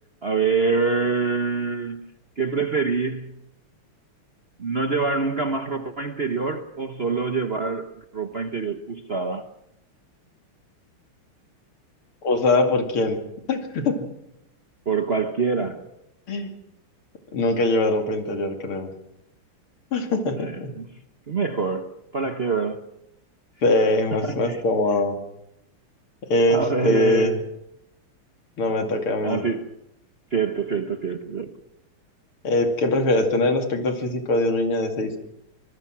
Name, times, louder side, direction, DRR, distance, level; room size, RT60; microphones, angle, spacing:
voice 1, 0.2-3.4 4.6-9.5 14.9-15.9 20.4-20.9 21.3-22.8 24.1-24.6 26.5-27.4 29.2-29.7 30.3-31.6, right 4 dB, 40° right, 0.9 m, -25 dB
voice 2, 12.2-13.2 13.5-14.1 16.3-16.5 17.3-18.9 19.9-20.7 23.6-25.2 26.2-27.3 28.6-29.4 32.4-35.2, left 2 dB, 75° left, 3.4 m, -22 dB
25.5 x 20.0 x 6.1 m
omnidirectional pair, 2.4 m